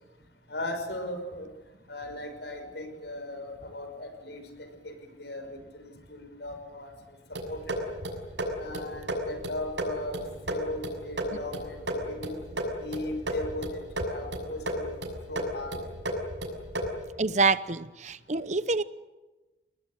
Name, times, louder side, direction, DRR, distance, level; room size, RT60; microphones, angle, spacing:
voice 1, 0.5-1.5 1.9-4.4 4.8-5.5 5.7-6.9 7.5-7.9 8.6-10.2 10.5-11.8 12.0-12.4 12.8-13.8 14.1-15.0 15.3-15.7, left 1 dB, 70° left, 7 dB, 5.8 m, -37 dB
sound 1, 7.3-17.1, equal, 80° right, 6.6 m, -34 dB
voice 2, 17.2-18.8, right 3 dB, 40° right, 15 dB, 0.8 m, -26 dB
29.5 x 20.0 x 9.4 m, 1.1 s
head